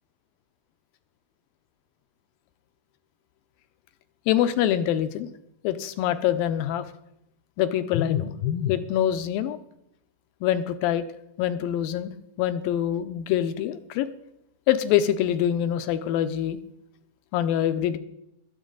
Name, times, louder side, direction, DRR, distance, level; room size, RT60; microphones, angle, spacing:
voice 1, 4.3-5.3 5.6-6.9 7.6-9.6 10.4-11.0 11.4-14.1 14.7-16.6 17.3-18.0, left 11 dB, 80° left, 11 dB, 2.4 m, -25 dB
21.0 x 8.0 x 3.9 m, 0.81 s
omnidirectional pair, 4.3 m